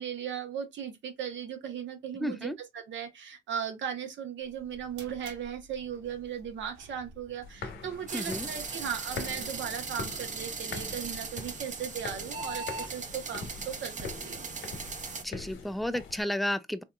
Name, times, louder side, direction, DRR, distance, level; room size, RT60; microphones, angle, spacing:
voice 1, 0.0-14.5, right 8 dB, 70° right, 0.9 m, -37 dB
voice 2, 2.2-2.6 8.1-8.5 15.2-16.8, left 1 dB, ahead, 0.3 m, -32 dB
sound 1, 4.4-12.9, right 1 dB, 90° right, 1.3 m, -48 dB
sound 2, 7.4-16.2, left 4 dB, 75° left, 1.1 m, -43 dB
sound 3, 8.1-15.2, right 4 dB, 40° right, 0.8 m, -39 dB
3.7 x 2.7 x 2.2 m
cardioid pair, 90°, 20 cm